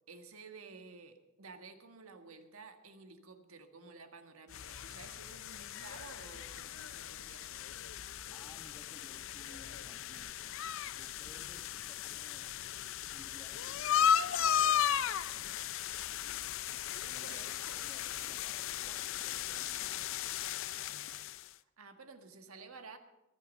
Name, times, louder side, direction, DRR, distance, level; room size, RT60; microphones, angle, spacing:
voice 1, 0.1-7.6 17.1-17.8 21.8-23.0, right 4 dB, 80° right, 6 dB, 1.6 m, -53 dB
sound 1, 4.5-21.5, left 9 dB, 65° left, 0.5 m, -36 dB
voice 2, 8.3-10.4 10.9-12.5 13.1-15.4 17.0-20.2, left 1 dB, 15° left, 4 dB, 1.7 m, -59 dB
22.5 x 9.6 x 5.4 m, 0.97 s
head